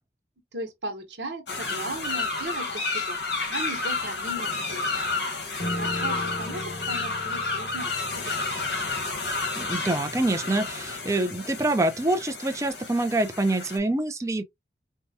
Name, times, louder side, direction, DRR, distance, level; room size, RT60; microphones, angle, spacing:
voice 1, 0.5-3.2 3.5-4.8 5.8-8.4 10.4-10.5, right 2 dB, 85° right, 1.1 m, -37 dB
sound 1, 1.5-13.8, left 3 dB, 80° left, 1.4 m, -31 dB
Piano, 5.6-10.9, left 1 dB, 40° left, 0.7 m, -38 dB
voice 2, 9.3-14.4, right 2 dB, 15° right, 0.5 m, -26 dB
4.6 x 2.2 x 2.7 m
head